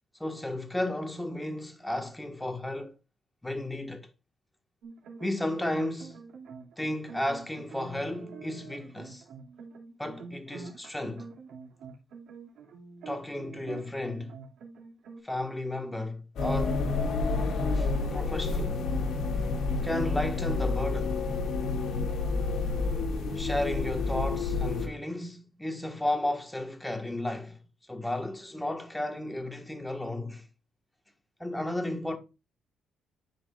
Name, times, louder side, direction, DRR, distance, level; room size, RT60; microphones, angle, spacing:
voice 1, 0.2-2.9 3.4-4.1 5.2-6.2 6.8-9.2 10.0-11.3 13.0-14.3 15.2-16.8 17.7-18.8 19.8-21.2 23.3-27.6 27.9-30.4 31.4-32.2, left 1 dB, 5° left, 1.5 m, -33 dB
sound 1, 4.8-15.2, right 5 dB, 80° right, 2.4 m, -46 dB
sound 2, 16.4-24.9, left 3 dB, 65° left, 2.3 m, -29 dB
12.5 x 5.0 x 2.4 m
cardioid pair, 100°, 0 cm